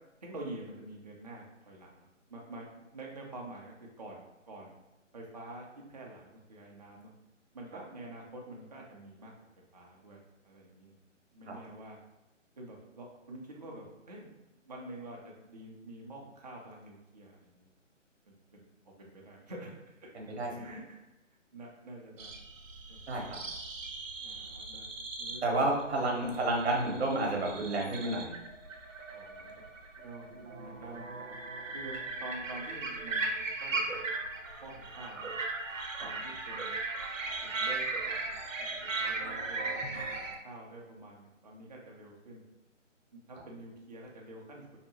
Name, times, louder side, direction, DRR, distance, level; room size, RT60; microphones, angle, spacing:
voice 1, 0.2-4.8 5.1-7.1 7.5-9.3 9.7-10.9 11.3-12.0 12.6-14.3 14.6-17.7 18.3-18.7 19.0-19.7 20.0-20.1 20.6-21.0 21.5-22.4 22.9-23.0 24.2-25.4 29.1-29.6 30.0-30.3 30.6-31.1 31.7-33.3 33.6-34.1 34.6-35.3 36.0-36.8 37.4-42.4 43.1-44.6, right 1 dB, 35° right, -2 dB, 0.4 m, -47 dB
voice 2, 20.1-20.5 23.1-23.4 25.4-28.3, right 2 dB, 55° right, -1 dB, 0.8 m, -30 dB
sound 1, 22.2-40.4, right 3 dB, 85° right, 0.6 m, -38 dB
2.7 x 2.1 x 2.8 m, 1.0 s
figure-of-eight pair, 145°, 38 cm